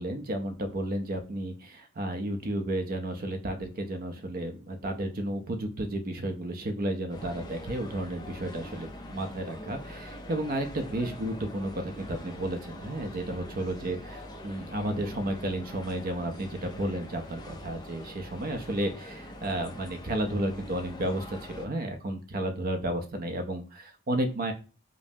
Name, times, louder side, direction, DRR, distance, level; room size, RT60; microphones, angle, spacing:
voice 1, 0.0-24.5, right 1 dB, 45° right, 6 dB, 0.5 m, -32 dB
sound 1, 7.1-21.7, left 1 dB, 20° left, 0.5 m, -44 dB
5.1 x 2.0 x 2.7 m, 0.34 s
head